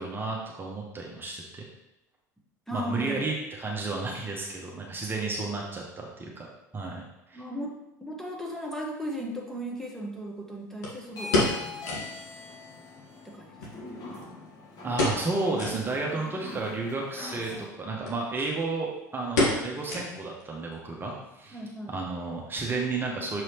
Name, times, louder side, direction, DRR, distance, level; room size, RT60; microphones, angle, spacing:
voice 1, 0.0-1.7 2.7-6.5 6.7-7.4 14.8-21.6 21.9-23.4, right 3 dB, 20° right, -2 dB, 1.2 m, -32 dB
voice 2, 2.7-3.2 7.3-7.7 8.0-12.2 13.2-13.8 21.5-21.9, equal, 5° left, -2 dB, 1.3 m, -37 dB
Briefcase Open & Close, 8.7-8.8 10.8-12.2 12.5-12.6 12.9-13.0 13.6-14.5 14.9-15.3 15.5-15.8 16.3-16.4 17.4-17.7 18.0-18.2 18.5-18.8 19.4-20.4 20.7-20.8 21.4-21.7 22.0-22.1, left 2 dB, 75° left, 1.7 m, -29 dB
sound 1, 11.1-17.6, left 4 dB, 45° left, 1.6 m, -42 dB
6.8 x 4.7 x 3.0 m, 0.91 s
figure-of-eight pair, 75°, 10 cm